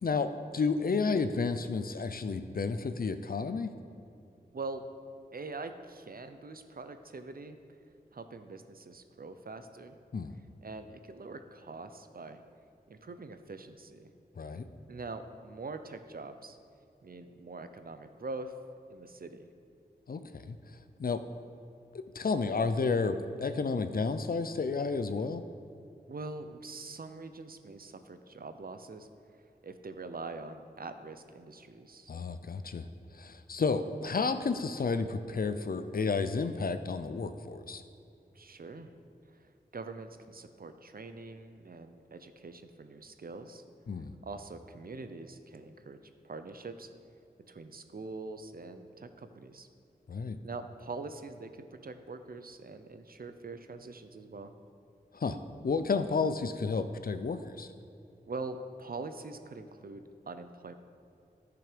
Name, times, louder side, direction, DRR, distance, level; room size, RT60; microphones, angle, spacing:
voice 1, 0.0-3.7 10.1-10.4 14.4-14.7 20.1-20.5 21.0-21.2 22.1-25.4 32.1-32.9 33.2-37.8 43.9-44.1 50.1-50.4 55.1-55.4 55.6-57.7, left 4 dB, 60° left, 10 dB, 0.6 m, -31 dB
voice 2, 4.5-4.8 5.3-7.6 8.1-10.0 10.6-12.4 12.9-14.1 14.9-16.6 17.0-18.5 18.9-19.5 26.1-29.1 29.6-32.1 38.3-38.9 39.3-43.6 44.2-46.9 47.5-49.7 50.4-54.5 58.2-60.8, right 3 dB, 60° right, 9 dB, 0.7 m, -43 dB
11.0 x 5.9 x 5.1 m, 2.6 s
cardioid pair, 45°, 17 cm